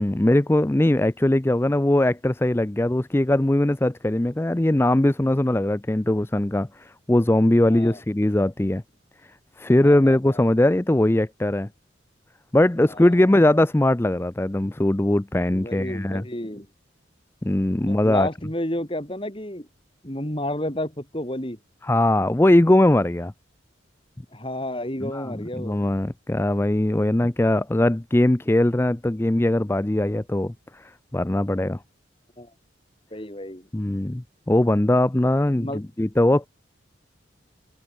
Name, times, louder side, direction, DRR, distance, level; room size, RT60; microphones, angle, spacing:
voice 1, 0.0-8.8 9.6-11.7 12.5-16.2 17.4-18.3 21.8-23.3 25.0-31.8 33.7-36.5, left 1 dB, 10° left, 0.5 m, -20 dB
voice 2, 9.8-10.4 13.0-13.1 15.5-16.7 17.8-19.7 20.0-21.6 24.3-25.8 32.4-32.5 33.1-33.7 35.6-35.8, left 1 dB, 25° left, 4.9 m, -31 dB
head